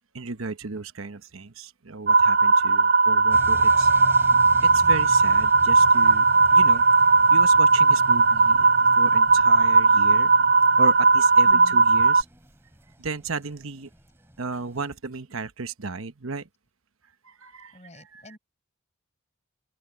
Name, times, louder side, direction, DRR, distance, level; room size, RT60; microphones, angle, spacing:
voice 1, 0.1-3.9 4.2-6.8 7.3-8.7 8.9-10.3 10.8-12.3 13.0-13.9 14.4-16.5 17.2-18.4, right 4 dB, 80° right, 1.1 m, -35 dB
sound 1, 2.1-12.2, right 4 dB, 45° right, 0.5 m, -18 dB
sound 2, 3.3-14.9, equal, 10° right, 3.2 m, -42 dB
voice 2, 11.4-11.8 17.7-18.4, equal, 30° left, 5.8 m, -45 dB
open air
head